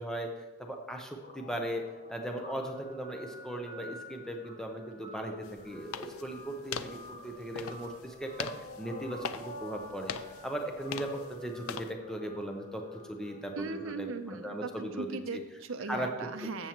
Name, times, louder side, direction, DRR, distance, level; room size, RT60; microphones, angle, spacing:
voice 1, 0.0-10.2 10.4-15.4 15.8-16.1, right 1 dB, 5° left, 2 dB, 0.7 m, -38 dB
Guitar, 1.2-13.9, left 1 dB, 35° left, 1.0 m, -48 dB
sound 1, 5.4-11.9, left 7 dB, 70° left, 0.5 m, -43 dB
voice 2, 13.6-16.7, right 3 dB, 60° right, 7 dB, 0.6 m, -38 dB
14.5 x 7.0 x 3.0 m, 1.1 s
head